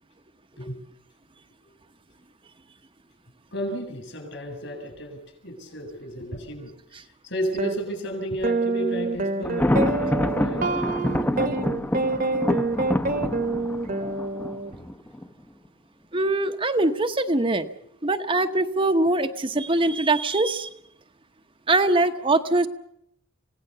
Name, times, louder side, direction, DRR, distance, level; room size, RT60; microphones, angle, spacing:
voice 1, 3.5-6.7 7.0-11.0 11.3-11.5 13.0-13.3, equal, 65° left, 5 dB, 7.5 m, -33 dB
sound 1, 7.6-7.8 8.4-14.8, right 3 dB, 45° right, 1.4 m, -26 dB
Thunder, 9.5-15.3, left 1 dB, 10° left, 0.9 m, -26 dB
voice 2, 16.1-17.7 18.0-20.7 21.7-22.7, right 2 dB, 25° right, 6 dB, 1.0 m, -22 dB
27.0 x 17.5 x 6.9 m, 0.75 s
head